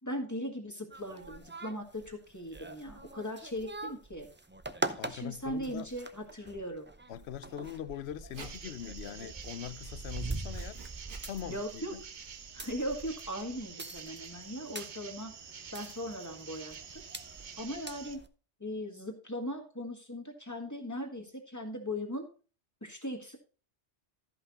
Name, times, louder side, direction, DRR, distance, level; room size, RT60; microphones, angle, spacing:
voice 1, 0.0-4.3 5.1-6.9 11.4-11.9 12.5-15.3 15.7-17.0 17.6-18.2 18.6-22.3 22.8-23.4, equal, 15° left, 1.7 m, -39 dB
sound 1, 0.9-18.3, right 2 dB, 20° right, 0.3 m, -43 dB
voice 2, 5.0-5.9 7.1-10.8 11.3-12.0, left 10 dB, 70° left, 0.9 m, -42 dB
Writing, 8.0-14.3, right 4 dB, 85° right, 1.8 m, -57 dB
sound 2, 8.4-18.2, right 6 dB, 50° right, 0.8 m, -48 dB
13.0 x 5.6 x 4.1 m
omnidirectional pair, 1.2 m